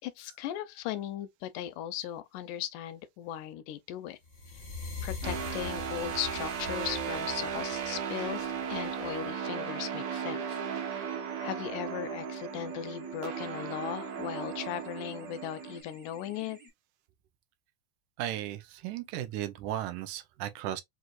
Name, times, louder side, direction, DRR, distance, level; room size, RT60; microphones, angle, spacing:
voice 1, 0.0-4.2 5.0-16.6, left 11 dB, 90° left, 2.2 m, -38 dB
sound 1, 4.3-9.3, left 4 dB, 50° left, 0.8 m, -42 dB
sound 2, 5.2-15.8, right 7 dB, 65° right, 2.3 m, -36 dB
sound 3, 6.7-16.7, right 1 dB, 50° right, 0.7 m, -49 dB
voice 2, 18.2-20.8, right 12 dB, 85° right, 2.0 m, -35 dB
6.1 x 2.6 x 2.4 m
omnidirectional pair, 3.5 m